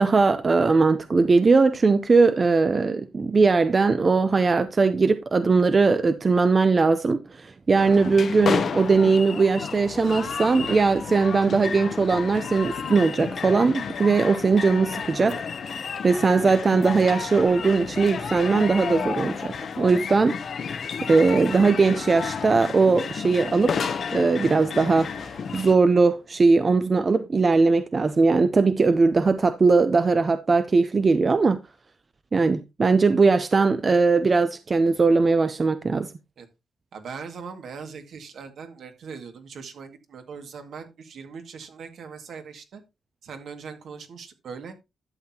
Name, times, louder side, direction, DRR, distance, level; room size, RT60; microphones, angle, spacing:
voice 1, 0.0-15.7 16.0-20.4 20.7-20.8 21.1-31.6 32.3-36.1, right 4 dB, 30° right, 0.6 m, -20 dB
sound 1, 7.8-25.8, left 6 dB, 50° left, 0.9 m, -31 dB
voice 2, 36.9-42.8 43.2-44.7, right 5 dB, 65° right, 2.0 m, -40 dB
11.5 x 7.8 x 2.8 m
cardioid pair, 125°, 0 cm